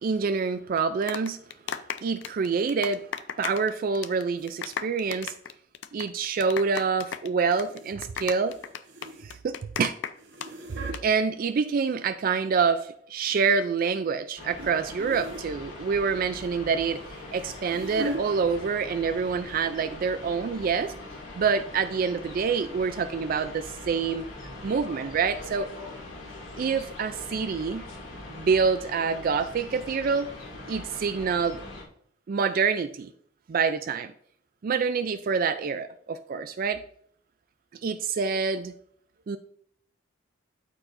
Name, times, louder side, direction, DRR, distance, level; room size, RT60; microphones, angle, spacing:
voice 1, 0.0-1.4 2.0-3.1 3.4-5.3 5.9-8.5 9.2-9.9 10.7-17.0 17.3-20.9 21.4-24.3 24.6-25.7 26.6-27.8 28.3-30.3 30.7-31.6 32.3-33.1 33.5-34.1 34.6-36.8 37.8-38.7 39.3-39.4, right 5 dB, 45° right, 0.3 m, -26 dB
sound 1, 0.8-3.7 3.9-4.2 4.5-10.5 10.8-11.0, left 7 dB, 65° left, 0.5 m, -35 dB
sound 2, 4.4-4.6 7.5-8.0 8.3-9.5 10.1-11.0 12.0-12.8 13.3-13.6 14.6-14.7 15.0-15.5 17.0-18.2 19.1-19.3 19.6-19.7 20.2-20.3, right 1 dB, 65° right, 1.2 m, -39 dB
sound 3, 14.4-31.8, left 2 dB, 85° left, 2.4 m, -42 dB
12.5 x 4.7 x 2.6 m
head